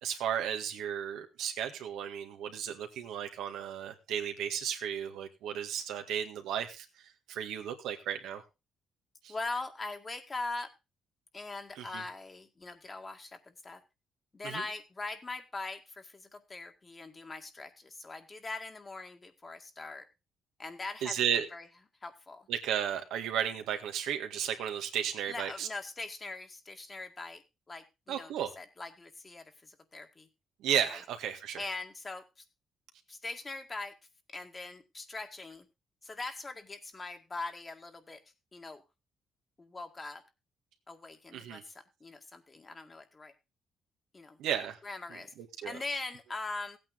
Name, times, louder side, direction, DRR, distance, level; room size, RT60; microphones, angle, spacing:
voice 1, 0.0-6.9 7.3-8.4 9.2-9.3 11.8-12.0 14.4-14.6 21.0-21.5 22.5-25.7 28.1-28.5 30.6-31.7 41.3-41.6 44.4-44.8 45.1-45.7, right 9 dB, 85° right, 6 dB, 1.8 m, -34 dB
voice 2, 9.3-10.7 11.3-13.8 14.3-20.1 20.6-21.7 22.0-22.5 25.3-27.4 27.7-30.3 31.6-32.5 33.1-34.0 34.3-35.7 36.0-38.2 38.5-38.8 39.6-40.2 40.9-43.3 44.1-44.4 44.8-45.3 45.6-46.8, left 3 dB, 30° left, 6 dB, 2.0 m, -41 dB
15.5 x 8.9 x 3.8 m, 0.27 s
cardioid pair, 90°, 0 cm